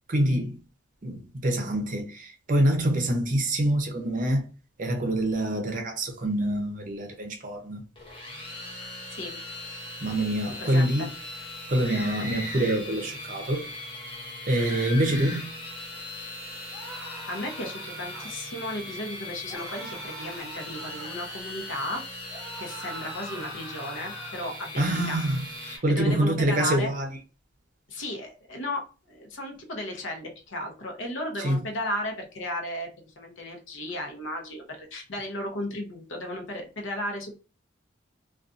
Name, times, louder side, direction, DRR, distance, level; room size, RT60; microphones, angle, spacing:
voice 1, 0.1-0.6 1.0-4.5 4.8-7.8 10.0-11.1 11.7-13.7 14.5-15.5 24.8-25.4 25.8-27.1 31.4-31.6, right 1 dB, 40° right, 0.6 m, -25 dB
sound 1, 8.0-25.8, left 2 dB, 25° left, 0.7 m, -40 dB
voice 2, 10.6-11.1 16.8-16.9 17.3-22.0 22.6-25.2 25.6-26.9 27.9-37.3, left 1 dB, 70° left, 0.8 m, -35 dB
sound 2, 11.8-12.8 14.5-15.5 16.7-18.3 19.5-21.2 22.3-24.4, right 1 dB, 5° right, 1.0 m, -41 dB
2.5 x 2.3 x 2.4 m
head